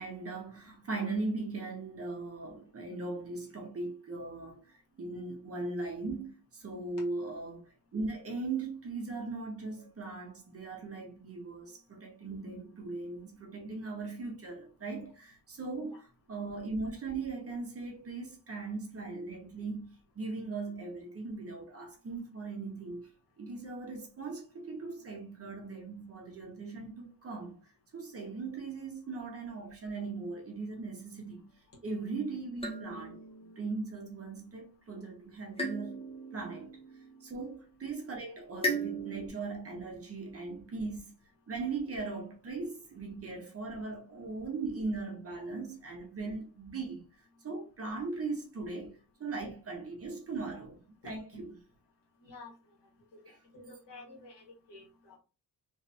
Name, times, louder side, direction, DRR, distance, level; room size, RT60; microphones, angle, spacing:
voice 1, 0.0-7.6 7.9-23.1 23.4-27.6 27.9-31.6 31.8-33.2 33.6-36.0 36.3-41.1 41.5-47.1 47.4-51.5 53.3-53.4, right 3 dB, 35° right, 0.9 m, -39 dB
sound 1, 32.6-34.2 35.6-37.7 38.6-39.3, right 1 dB, 15° left, 0.7 m, -37 dB
voice 2, 52.2-52.5 53.5-55.2, left 3 dB, 75° left, 1.7 m, -50 dB
3.2 x 3.2 x 2.7 m
wide cardioid pair, 175°, 42 cm